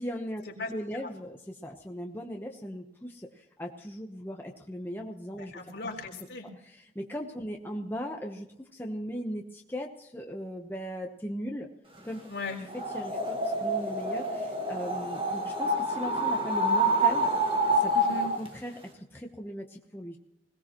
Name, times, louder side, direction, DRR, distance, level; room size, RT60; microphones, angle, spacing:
voice 1, 0.0-0.4 0.7-5.5 6.6-11.7 12.0-12.2 12.7-17.3 17.7-17.9 18.4-20.2, equal, 10° left, 1 dB, 1.0 m, -38 dB
voice 2, 5.4-6.5 12.3-12.6 17.9-18.3, left 2 dB, 65° left, -1 dB, 4.1 m, -37 dB
sound 1, 12.7-18.5, right 1 dB, 30° right, 2.0 m, -27 dB
21.5 x 18.0 x 3.1 m, 0.82 s
head